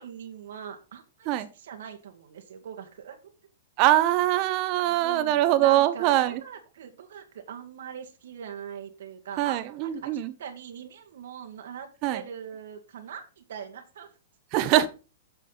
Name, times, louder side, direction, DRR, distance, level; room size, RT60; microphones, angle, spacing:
voice 1, 0.0-1.3 1.5-3.2 4.9-14.1, right 8 dB, 75° right, 1.6 m, -42 dB
voice 2, 3.8-6.4 9.4-10.3 12.0-12.2 14.5-14.9, right 13 dB, 40° right, 1.0 m, -23 dB
8.5 x 6.4 x 3.9 m
hypercardioid pair, 145°, 0 cm